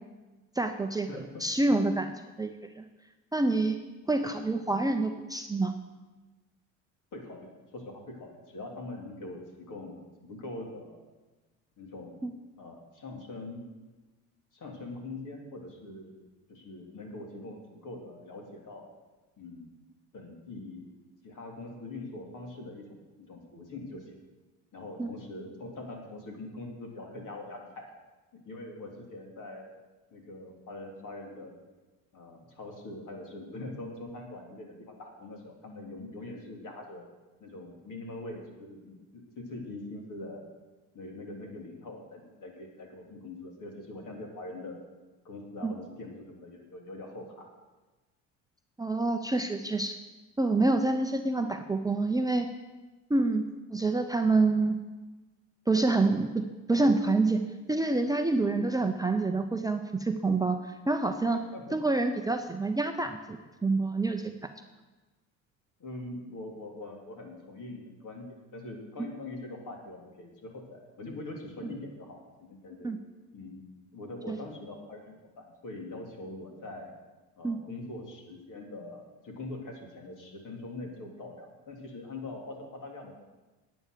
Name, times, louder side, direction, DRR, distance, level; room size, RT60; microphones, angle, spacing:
voice 1, 0.5-2.1 2.4-2.8 3.3-3.8 4.1-5.7 12.2-12.3 25.0-25.1 45.6-45.7 48.8-50.0 50.4-52.5 53.1-53.4 53.7-54.8 55.7-57.4 57.7-61.4 61.7-64.3 72.8-73.0 74.3-74.4 77.4-77.6, right 3 dB, 10° right, 5 dB, 0.7 m, -27 dB
voice 2, 1.1-1.4 4.2-4.3 7.1-11.0 11.8-12.3 12.6-13.6 14.5-16.2 16.5-18.9 19.4-19.7 20.1-20.9 21.2-24.1 24.7-27.9 28.3-29.7 30.1-31.6 32.1-37.1 37.4-40.5 40.9-44.8 45.2-47.5 61.3-61.8 65.8-72.9 73.3-73.6 73.9-77.0 77.4-83.2, left 2 dB, 50° left, 1 dB, 3.3 m, -43 dB
9.7 x 9.2 x 6.8 m, 1.2 s
hypercardioid pair, 70°, 40 cm